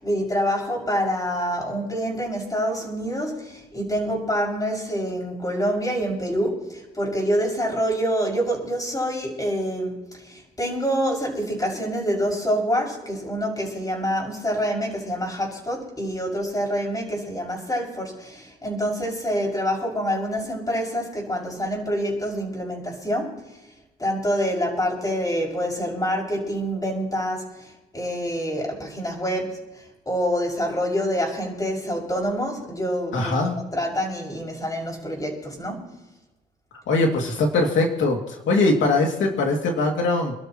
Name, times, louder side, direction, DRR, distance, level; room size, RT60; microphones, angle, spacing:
voice 1, 0.0-23.5 24.0-35.9, equal, 20° left, -1 dB, 6.4 m, -26 dB
voice 2, 33.1-33.6 36.9-40.3, left 2 dB, 75° left, 1 dB, 2.6 m, -21 dB
29.0 x 12.5 x 3.1 m, 1.1 s
cardioid pair, 90°, 20 cm